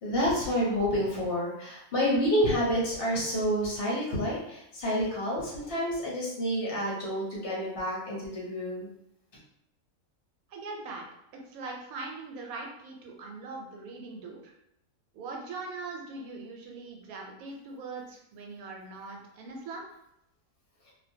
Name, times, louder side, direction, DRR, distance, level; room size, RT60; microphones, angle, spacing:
voice 1, 0.0-8.9, equal, 55° left, -5 dB, 0.8 m, -29 dB
voice 2, 10.5-11.0 11.3-14.5 15.1-19.8, right 3 dB, 80° right, 0 dB, 1.0 m, -41 dB
2.3 x 2.2 x 2.6 m, 0.79 s
omnidirectional pair, 1.5 m